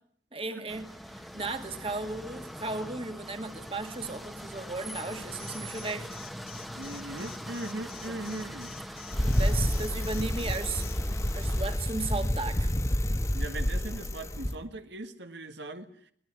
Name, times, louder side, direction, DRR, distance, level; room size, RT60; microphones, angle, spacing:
voice 1, 0.3-6.1 7.9-8.2 9.3-10.9 11.3-12.7, right 3 dB, 30° right, 8 dB, 1.8 m, -35 dB
sound 1, 0.7-11.8, equal, ahead, 1.2 m, -42 dB
Alarm, 5.4-10.9, left 10 dB, 60° left, 2.2 m, -48 dB
voice 2, 6.7-8.7 13.3-15.9, right 2 dB, 80° right, 8 dB, 1.7 m, -39 dB
Bicycle, 9.1-14.5, equal, 15° left, 1.1 m, -29 dB
22.0 x 19.5 x 9.7 m, 0.65 s
head